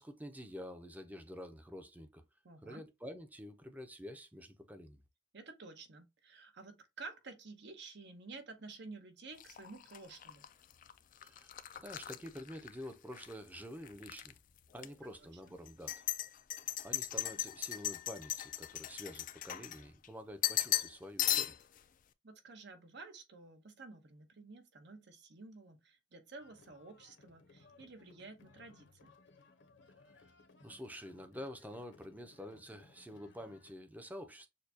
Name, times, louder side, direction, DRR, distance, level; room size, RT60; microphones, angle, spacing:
voice 1, 0.0-2.2 2.6-5.0 11.2-14.4 14.7-16.0 16.8-21.6 30.6-34.5, equal, 10° right, 0.6 m, -48 dB
voice 2, 2.4-2.8 5.3-10.5 15.2-15.3 22.2-29.1, right 3 dB, 65° right, 1.0 m, -52 dB
sound 1, 9.4-13.3 13.6-14.3 14.8-14.9 15.7-20.1 20.4-20.9 21.2-21.8, left 13 dB, 45° left, 0.4 m, -37 dB
Traditional music from Uganda Buganda kingdom, 26.4-33.7, left 3 dB, 70° left, 0.9 m, -63 dB
6.6 x 2.3 x 2.7 m
head